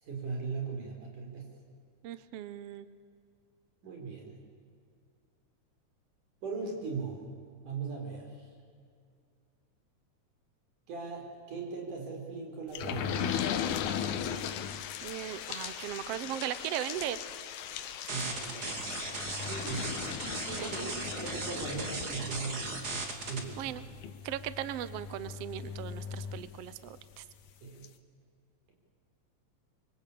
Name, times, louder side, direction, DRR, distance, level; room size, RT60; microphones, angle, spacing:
voice 1, 0.0-1.6 3.8-4.4 6.4-7.3 7.6-8.5 10.9-13.6 18.1-20.0 20.6-23.7 27.6-27.9, right 4 dB, 90° right, 2 dB, 6.0 m, -39 dB
voice 2, 2.0-2.9 15.0-17.2 20.2-20.9 23.6-23.8 24.2-27.2, right 12 dB, 70° right, 14 dB, 1.7 m, -38 dB
sound 1, 12.7-27.0 27.5-27.6 27.8-27.9, left 9 dB, 75° left, 2.5 m, -38 dB
sound 2, 18.1-23.4, right 3 dB, 35° right, 2.6 m, -37 dB
25.0 x 24.0 x 8.6 m, 2.3 s
omnidirectional pair, 3.5 m